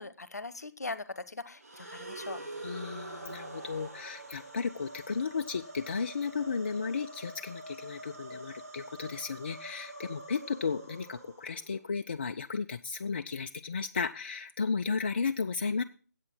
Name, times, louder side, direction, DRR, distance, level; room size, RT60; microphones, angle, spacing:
voice 1, 0.0-2.4, left 3 dB, 65° left, 16 dB, 0.9 m, -40 dB
sound 1, 1.6-11.8, right 2 dB, 60° right, 2.3 m, -45 dB
voice 2, 2.6-15.8, left 5 dB, 40° left, 7 dB, 0.4 m, -34 dB
8.2 x 7.5 x 6.1 m, 0.38 s
figure-of-eight pair, 150°, 9 cm